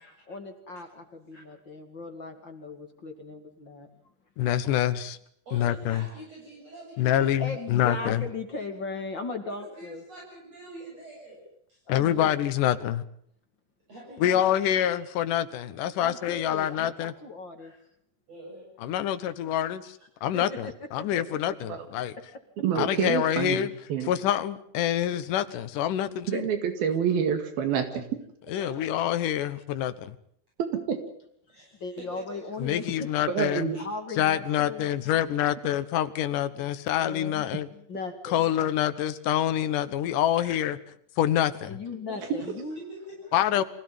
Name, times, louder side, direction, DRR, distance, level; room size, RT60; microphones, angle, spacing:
voice 1, 0.3-3.9 7.4-10.0 11.9-12.3 16.0-17.7 20.3-21.2 31.8-33.1 33.8-34.9 36.5-38.4 41.6-42.8, left 3 dB, 35° left, 2.3 m, -38 dB
voice 2, 4.4-5.2 5.5-6.0 7.0-8.2 11.9-13.0 14.2-17.1 18.8-19.8 20.2-22.2 22.8-23.7 24.0-26.5 28.5-30.2 32.6-33.7 34.2-37.7 38.2-40.8 41.2-41.8 43.3-43.6, left 11 dB, 65° left, 2.5 m, -26 dB
voice 3, 5.5-7.5 8.9-9.0 9.5-11.8 13.9-15.1 17.6-17.8 18.3-18.7 28.4-28.9 31.5-32.4 33.7-33.8 40.4-40.5 42.1-43.4, right 1 dB, 40° right, 9.1 m, -45 dB
voice 4, 22.6-24.1 26.3-28.1 30.6-31.0 33.3-33.8, right 7 dB, 75° right, 3.8 m, -27 dB
25.5 x 17.0 x 9.1 m
omnidirectional pair, 4.4 m